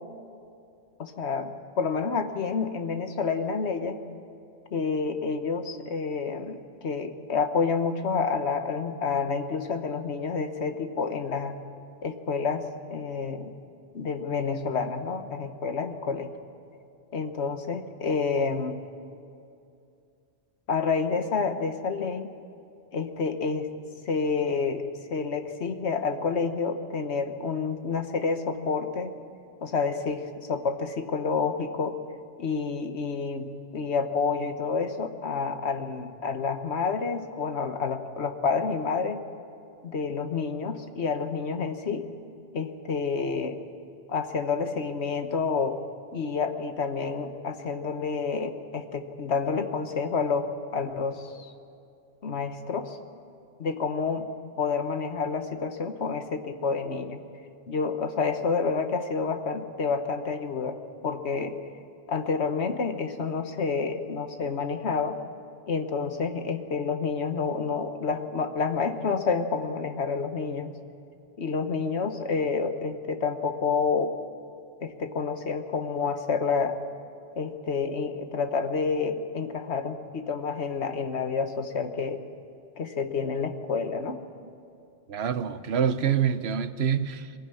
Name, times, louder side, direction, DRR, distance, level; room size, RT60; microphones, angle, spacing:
voice 1, 1.0-4.0 4.7-11.6 12.0-13.5 13.9-16.3 17.1-18.8 20.7-22.3 22.9-23.7 24.1-29.1 29.6-32.0 32.4-39.2 39.8-42.1 42.5-43.6 44.1-45.8 46.1-51.5 52.2-53.0 53.6-54.3 54.6-57.2 57.7-60.8 61.0-61.5 62.1-65.2 65.7-70.7 71.4-74.2 74.8-76.8 77.3-82.2 82.8-84.2, left 5 dB, 85° left, 8 dB, 1.5 m, -29 dB
voice 2, 85.1-87.3, right 8 dB, 75° right, 13 dB, 1.1 m, -26 dB
22.5 x 16.0 x 9.7 m, 2.5 s
omnidirectional pair, 1.1 m